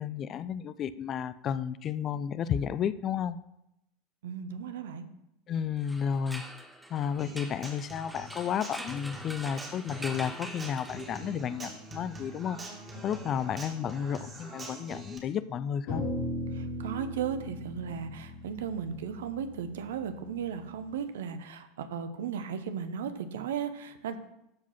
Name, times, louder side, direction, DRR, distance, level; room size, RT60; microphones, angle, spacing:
voice 1, 0.0-3.4 5.5-6.4 6.9-12.6 13.0-16.0 17.9-18.0, left 8 dB, 40° left, 15 dB, 0.5 m, -32 dB
voice 2, 4.2-5.1 16.5-24.2, right 7 dB, 70° right, 10 dB, 1.0 m, -36 dB
sound 1, 5.8-11.5, right 1 dB, 5° right, 1.3 m, -44 dB
Human voice / Acoustic guitar, 7.2-15.2, right 1 dB, 25° right, 2.6 m, -45 dB
sound 2, 15.9-20.4, left 1 dB, 60° left, 4.4 m, -37 dB
13.0 x 4.9 x 5.7 m, 0.83 s
figure-of-eight pair, 75°, 0 cm